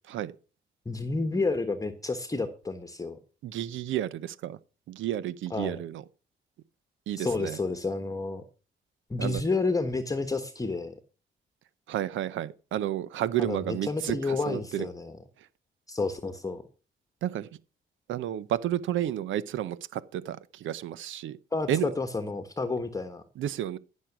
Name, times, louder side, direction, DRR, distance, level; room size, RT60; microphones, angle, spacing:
voice 1, 0.8-3.2 5.5-5.8 7.2-8.4 9.1-11.0 13.4-15.2 15.9-16.6 21.5-23.2, left 3 dB, 15° left, 1.3 m, -30 dB
voice 2, 3.4-4.6 4.9-6.0 7.1-7.6 9.2-9.4 11.9-14.9 17.2-17.5 18.1-21.4 21.7-21.9 23.4-23.8, right 12 dB, 75° right, 0.7 m, -31 dB
15.0 x 6.5 x 6.0 m
cardioid pair, 90°, 20 cm